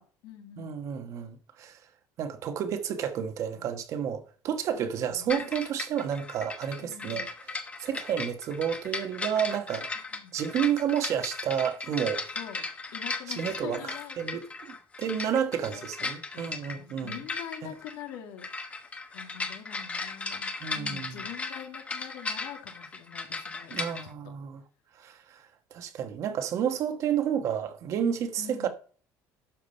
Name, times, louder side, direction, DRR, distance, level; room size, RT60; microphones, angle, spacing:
voice 1, 0.0-0.7 4.8-5.5 6.8-7.3 10.1-10.4 12.3-12.7 12.9-14.4 15.7-15.9 16.3-18.5 18.7-24.0 28.4-28.7, left 10 dB, 85° left, 2.4 m, -45 dB
voice 2, 0.6-1.8 2.2-7.3 7.8-9.9 10.3-12.2 13.3-14.4 15.0-17.2 17.6-17.7 20.6-21.1 23.7-24.6 25.0-25.4 25.7-28.7, right 8 dB, 45° right, 1.3 m, -30 dB
sound 1, 5.3-24.0, left 4 dB, 20° left, 1.1 m, -37 dB
12.0 x 5.0 x 5.4 m
cardioid pair, 165°, 7 cm